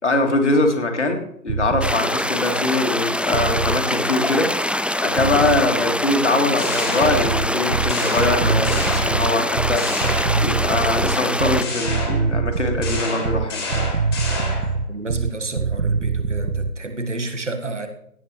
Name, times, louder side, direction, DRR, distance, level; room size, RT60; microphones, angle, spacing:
voice 1, 0.0-9.8 10.4-13.9, left 2 dB, 50° left, 4 dB, 2.4 m, -22 dB
sound 1, 1.5-2.0 3.3-3.9 5.2-5.7 7.0-16.7, right 5 dB, 70° right, 0.9 m, -24 dB
sound 2, 1.8-11.6, left 1 dB, 5° right, 0.3 m, -24 dB
sound 3, 6.6-7.6 7.9-9.4 9.8-10.8 11.6-14.8, left 2 dB, 15° left, 2.5 m, -29 dB
voice 2, 14.7-17.9, right 2 dB, 50° right, 6 dB, 1.7 m, -30 dB
17.0 x 8.9 x 3.3 m, 0.74 s
figure-of-eight pair, 165°, 46 cm